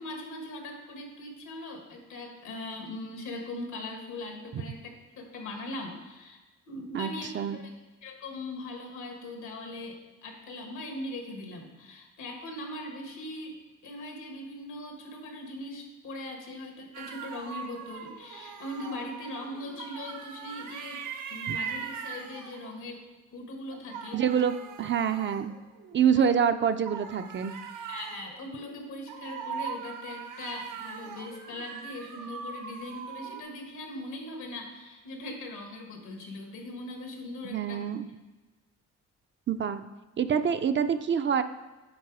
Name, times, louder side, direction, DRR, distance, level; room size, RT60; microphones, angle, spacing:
voice 1, 0.0-4.9 5.2-6.4 6.7-7.7 8.0-13.6 13.8-21.0 21.3-23.0 23.3-24.2 26.2-26.3 27.7-37.8, left 1 dB, 80° left, 2 dB, 1.7 m, -40 dB
sound 1, 16.9-22.9 23.7-26.1 26.9-33.4, right 7 dB, 85° right, 0.8 m, -41 dB
voice 2, 24.1-25.5 25.9-27.5 37.4-38.1 39.5-39.8 40.2-41.4, right 7 dB, 40° right, 9 dB, 0.4 m, -26 dB
8.8 x 4.0 x 4.9 m, 1.2 s
cardioid pair, 90°, 30 cm